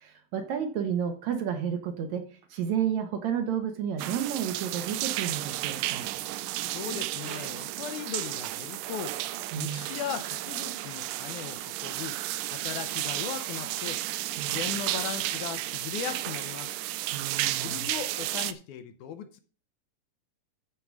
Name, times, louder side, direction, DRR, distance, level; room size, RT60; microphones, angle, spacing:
voice 1, 0.0-2.2 2.5-6.1 9.5-9.8 14.4-14.6 17.1-17.9, right 8 dB, 65° right, 7 dB, 2.2 m, -31 dB
sound 1, 4.0-18.5, right 15 dB, 85° right, 2.2 m, -33 dB
voice 2, 6.7-9.2 9.6-12.2 12.5-14.0 14.4-16.8 17.6-19.4, left 9 dB, 75° left, 10 dB, 2.0 m, -38 dB
12.5 x 4.6 x 6.0 m, 0.39 s
omnidirectional pair, 3.9 m